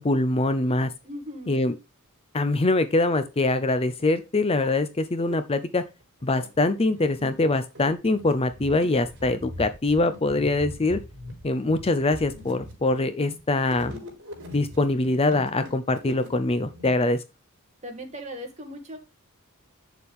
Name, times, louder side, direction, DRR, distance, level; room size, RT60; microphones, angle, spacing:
voice 1, 0.0-0.9 1.5-1.7 2.3-5.8 6.2-11.0 11.4-13.9 14.5-17.2, left 2 dB, 25° left, 11 dB, 0.6 m, -23 dB
voice 2, 1.0-1.6 17.8-19.0, equal, 30° right, 2 dB, 2.2 m, -38 dB
sound 1, 4.0-4.1 4.4-5.4 6.0-16.9, left 1 dB, 60° right, 4.1 m, -41 dB
8.2 x 7.0 x 3.5 m, 0.27 s
head